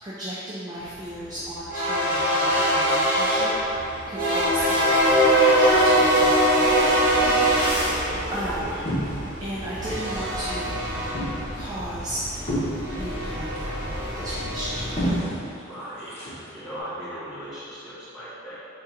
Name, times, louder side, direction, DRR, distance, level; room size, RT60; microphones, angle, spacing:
voice 1, 0.0-6.9 7.2-8.8 9.4-10.9 11.5-12.3 13.0-14.9, equal, 20° right, -9 dB, 0.5 m, -35 dB
sound 1, 0.8-15.2, equal, 45° right, 1.1 m, -23 dB
voice 2, 8.1-8.8 15.7-16.1 16.5-18.6, equal, 5° right, -13 dB, 1.3 m, -38 dB
sound 2, 8.2-9.5 9.8-10.5 10.8-16.8, equal, 30° left, 1.0 m, -33 dB
3.8 x 2.4 x 4.3 m, 2.6 s
head